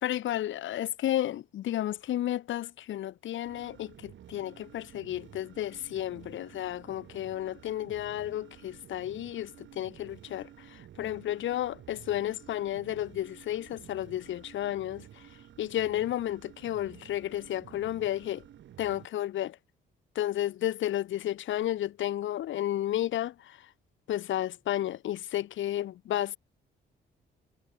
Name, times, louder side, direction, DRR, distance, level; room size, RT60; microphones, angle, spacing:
voice 1, 0.0-15.1 15.6-18.4 18.8-19.6 20.1-23.6 24.1-26.4, left 12 dB, 75° left, 3.0 m, -32 dB
sound 1, 3.4-19.1, right 11 dB, 70° right, 6.2 m, -52 dB
cardioid pair, 90°, 20 cm